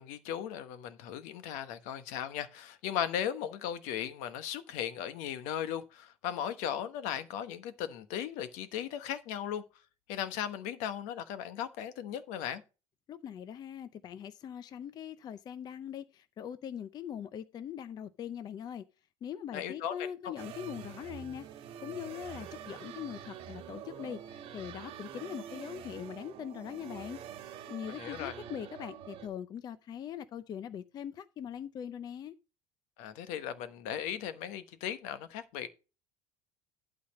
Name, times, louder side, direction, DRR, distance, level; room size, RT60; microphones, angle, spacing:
voice 1, 0.0-9.6 10.1-12.6 19.5-20.3 27.9-28.3 33.0-35.7, left 9 dB, 70° left, 1.1 m, -37 dB
voice 2, 13.1-18.8 19.2-21.4 21.8-27.2 27.7-32.3, left 9 dB, 30° left, 0.5 m, -41 dB
sound 1, 20.4-29.3, right 9 dB, 45° right, 1.4 m, -46 dB
12.0 x 4.1 x 5.2 m
cardioid pair, 150°, 13 cm